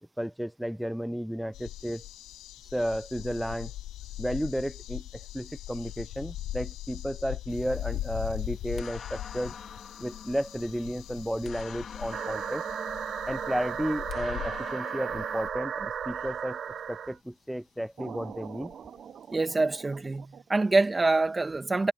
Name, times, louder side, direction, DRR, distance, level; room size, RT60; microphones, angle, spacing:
voice 1, 0.2-2.1 2.6-3.7 4.2-9.6 10.0-12.7 13.3-16.6 16.9-18.7, equal, ahead, 0.5 m, -33 dB
sound 1, 1.5-16.7 18.3-18.4 18.7-18.8, left 14 dB, 90° left, 5.4 m, -40 dB
sound 2, 7.5-15.5, left 6 dB, 50° left, 2.5 m, -47 dB
sound 3, 12.1-17.2 18.0-20.4, right 8 dB, 55° right, 0.6 m, -36 dB
voice 2, 19.3-21.9, right 3 dB, 20° right, 1.7 m, -25 dB
cardioid pair, 90°, 0 cm